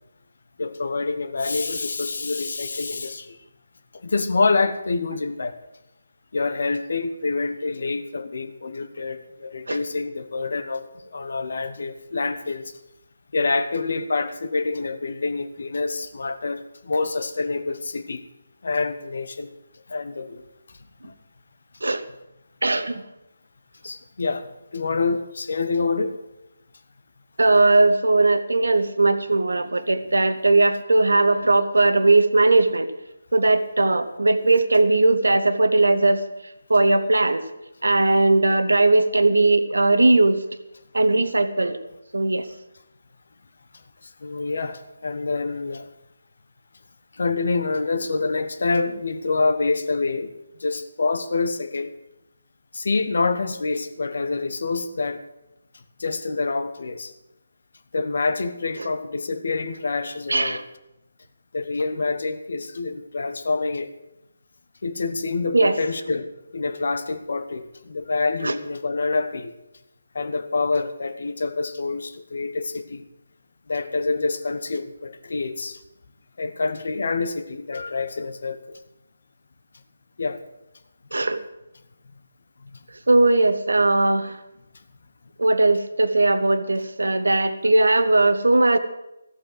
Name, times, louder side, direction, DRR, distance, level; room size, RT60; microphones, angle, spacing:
voice 1, 0.6-3.4 4.0-5.6 6.3-12.8 13.3-18.2 18.6-19.5 19.9-20.4 21.0-21.1 23.8-26.2 44.0-45.9 47.1-50.3 50.6-51.9 52.7-55.2 56.0-57.1 57.9-60.6 61.5-63.9 64.8-69.5 70.1-73.0 73.7-75.8 76.4-78.8 80.2-80.4 82.6-82.8, left 3 dB, 50° left, 10 dB, 1.1 m, -26 dB
voice 2, 22.6-23.0 27.4-32.9 33.3-36.2 36.7-37.4 37.8-40.4 40.9-41.8 42.1-42.5 60.3-60.6 65.5-65.8 68.4-68.5 81.1-81.4 83.1-84.4 85.4-88.8, right 2 dB, 65° right, 12 dB, 1.0 m, -19 dB
14.5 x 7.8 x 7.7 m, 0.90 s
figure-of-eight pair, 150°, 0 cm